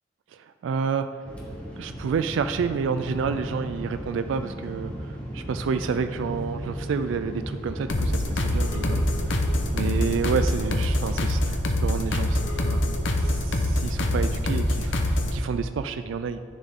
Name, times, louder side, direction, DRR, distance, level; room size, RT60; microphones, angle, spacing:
voice 1, 0.3-1.2 1.8-9.4 9.7-12.8 13.2-16.4, right 5 dB, 65° right, 10 dB, 0.3 m, -29 dB
sound 1, 1.2-10.9, equal, 5° left, 1.2 m, -36 dB
sound 2, 7.9-15.4, left 1 dB, 65° left, 0.8 m, -25 dB
9.9 x 7.0 x 3.7 m, 2.2 s
head